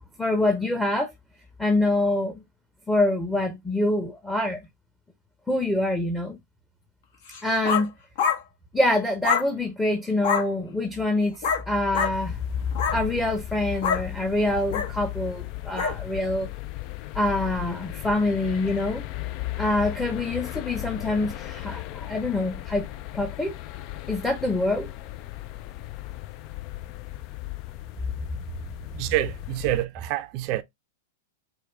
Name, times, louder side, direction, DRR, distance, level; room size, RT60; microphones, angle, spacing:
voice 1, 0.2-1.1 1.6-2.4 2.9-4.6 5.5-6.4 7.4-7.9 8.7-12.4 12.9-16.5 17.1-19.0 19.6-22.8 23.1-23.6 24.1-24.9 28.9-29.1, left 2 dB, 5° left, 0.8 m, -25 dB
sound 1, 7.3-7.9 8.2-8.4 9.2-9.5 10.2-10.5 11.4-11.6 11.9-12.1 12.7-13.0 13.8-14.0 14.7-14.9 15.8-16.0, left 7 dB, 65° left, 1.2 m, -25 dB
sound 2, 12.1-29.8, left 17 dB, 45° left, 0.4 m, -36 dB
voice 2, 29.0-30.6, right 16 dB, 50° right, 0.5 m, -27 dB
4.7 x 2.2 x 3.3 m
hypercardioid pair, 115°, 0 cm